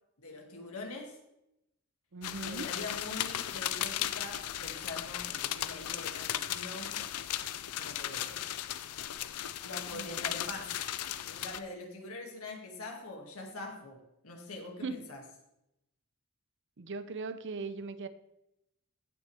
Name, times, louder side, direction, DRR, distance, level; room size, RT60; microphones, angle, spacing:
voice 1, 0.2-1.2 2.4-7.0 7.8-8.4 9.6-10.8 11.3-15.2, left 2 dB, 70° left, 1 dB, 2.1 m, -44 dB
voice 2, 2.1-2.7 9.9-10.2 14.8-15.1 16.8-18.1, right 3 dB, 55° right, 12 dB, 0.7 m, -39 dB
sound 1, 2.2-11.6, left 12 dB, 90° left, 0.5 m, -36 dB
16.0 x 6.3 x 3.4 m, 0.85 s
head